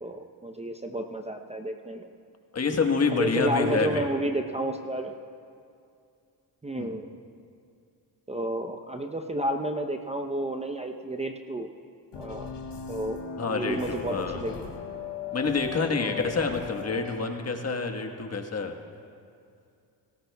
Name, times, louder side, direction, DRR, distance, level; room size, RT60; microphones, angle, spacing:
voice 1, 0.0-2.1 3.1-5.1 6.6-7.1 8.3-11.7 12.1-12.5 12.9-13.2 13.5-14.7 16.0-16.2 16.9-17.0, right 1 dB, 15° right, 4 dB, 0.7 m, -31 dB
voice 2, 2.5-4.1 6.8-6.9 13.4-14.4 15.3-18.7, left 4 dB, 35° left, 4 dB, 1.4 m, -27 dB
sound 1, 12.1-17.1, left 7 dB, 75° left, 2.2 m, -38 dB
18.0 x 17.0 x 2.3 m, 2.4 s
supercardioid pair, 65°, 43 cm